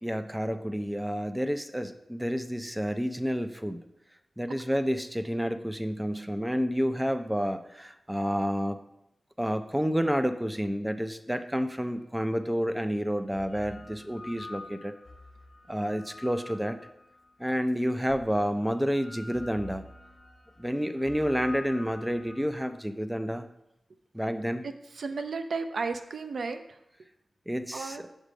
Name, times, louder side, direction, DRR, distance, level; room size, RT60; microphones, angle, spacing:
voice 1, 0.0-3.8 4.4-8.8 9.4-14.9 15.7-16.8 17.4-19.8 20.6-23.5 24.1-24.6 27.5-28.1, equal, 5° right, 9 dB, 0.4 m, -29 dB
sound 1, 12.0-12.1 13.1-17.3 18.1-22.8, left 2 dB, 45° left, 1.1 m, -47 dB
voice 2, 24.6-26.6 27.7-28.0, right 4 dB, 75° right, 9 dB, 0.4 m, -33 dB
6.4 x 3.3 x 5.1 m, 0.86 s
wide cardioid pair, 80°, 0 cm